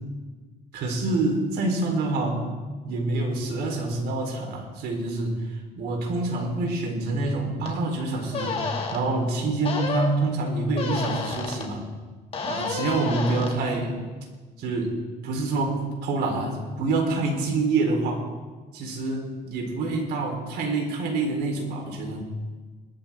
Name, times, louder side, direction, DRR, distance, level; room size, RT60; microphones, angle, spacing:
voice 1, 0.7-2.5 2.8-8.6 8.9-11.8 12.4-14.0 14.6-15.0 15.2-18.2 18.7-22.2, right 3 dB, 75° right, 1 dB, 4.0 m, -26 dB
sound 1, 7.6-7.7 8.3-9.0 9.6-10.1 10.7-11.7 12.3-13.6, left 4 dB, 35° left, 2.4 m, -30 dB
21.5 x 13.0 x 3.7 m, 1.4 s
cardioid pair, 110°, 17 cm